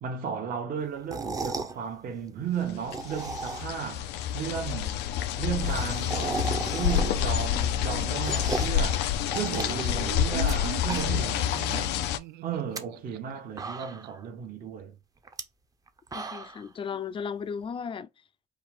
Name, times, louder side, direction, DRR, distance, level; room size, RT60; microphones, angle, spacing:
voice 1, 0.0-5.0 5.4-9.1 9.3-12.0 12.4-14.9, right 7 dB, 55° right, 1.1 m, -34 dB
sound 1, 1.0-1.8 2.7-3.9 4.2-4.3 4.5-4.6 4.8-4.9 5.2-7.4 7.7-8.8 9.3-10.5 10.8-11.4 11.7-11.8 12.5-12.8 13.3-13.4 13.6-14.2 15.2-15.4 15.9-16.6, right 4 dB, 20° right, 0.6 m, -36 dB
sound 2, 2.7-12.2, left 10 dB, 85° left, 0.5 m, -28 dB
Laughter, 9.5-14.1, right 14 dB, 80° right, 0.4 m, -40 dB
voice 2, 16.1-18.1, left 6 dB, 30° left, 0.5 m, -35 dB
4.7 x 2.4 x 3.6 m
cardioid pair, 110°, 17 cm